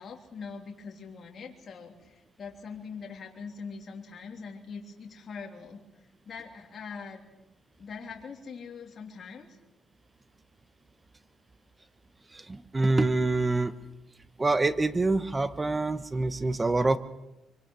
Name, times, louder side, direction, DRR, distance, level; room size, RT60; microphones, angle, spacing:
voice 1, 0.0-5.8 6.2-7.2 7.8-9.5, left 5 dB, 50° left, 1 dB, 3.1 m, -42 dB
voice 2, 12.3-13.7 14.4-17.0, right 2 dB, 20° right, 12 dB, 1.4 m, -26 dB
24.5 x 24.5 x 6.3 m, 0.97 s
cardioid pair, 90°, 0 cm